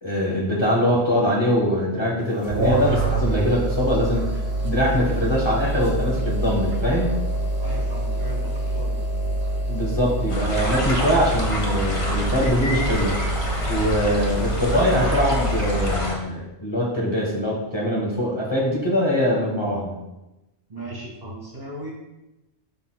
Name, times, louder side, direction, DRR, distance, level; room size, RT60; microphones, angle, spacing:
voice 1, 0.0-4.3 4.6-7.2 9.7-13.2 13.7-20.0, equal, 25° left, -4 dB, 1.1 m, -23 dB
sound 1, 2.4-16.0, right 1 dB, 60° right, 1.1 m, -26 dB
voice 2, 7.6-9.0 20.7-21.9, right 1 dB, 40° right, -3 dB, 1.8 m, -37 dB
sound 2, 10.3-16.1, left 1 dB, 60° left, 1.5 m, -28 dB
11.5 x 4.0 x 2.2 m, 1.0 s
omnidirectional pair, 1.2 m